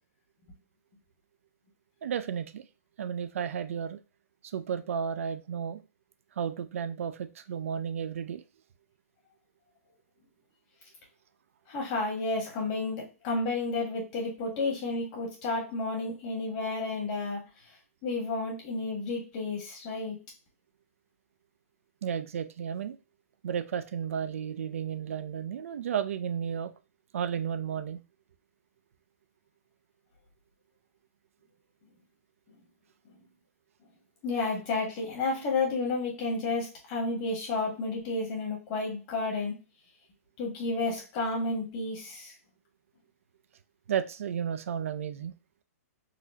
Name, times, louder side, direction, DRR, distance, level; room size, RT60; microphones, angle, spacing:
voice 1, 2.0-2.6 3.0-4.0 4.5-5.8 6.4-8.4 22.0-23.0 23.4-26.7 27.1-28.0 43.9-45.3, right 8 dB, 60° right, 11 dB, 0.4 m, -33 dB
voice 2, 11.7-17.5 18.0-20.2 34.2-39.6 40.4-42.3, left 3 dB, 25° left, -2 dB, 1.4 m, -31 dB
4.0 x 2.7 x 2.7 m, 0.30 s
hypercardioid pair, 175°, 8 cm